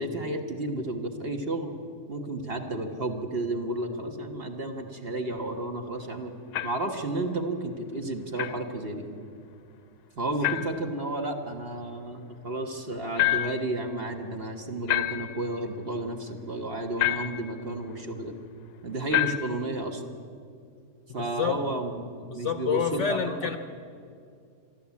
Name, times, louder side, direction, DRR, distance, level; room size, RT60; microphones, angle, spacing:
voice 1, 0.0-1.7 2.1-6.3 6.6-9.1 10.2-18.3 18.8-20.0 21.1-22.1 22.3-23.5, right 2 dB, 40° right, 3 dB, 1.6 m, -32 dB
sound 1, 6.5-6.9 8.4-8.6 10.4-10.8 13.2-13.7 14.9-15.5 17.0-17.5 19.1-19.6, left 15 dB, 80° left, 1.3 m, -28 dB
voice 2, 21.2-21.6 22.2-23.6, left 6 dB, 55° left, 9 dB, 0.9 m, -28 dB
27.0 x 11.5 x 8.4 m, 2.4 s
omnidirectional pair, 1.7 m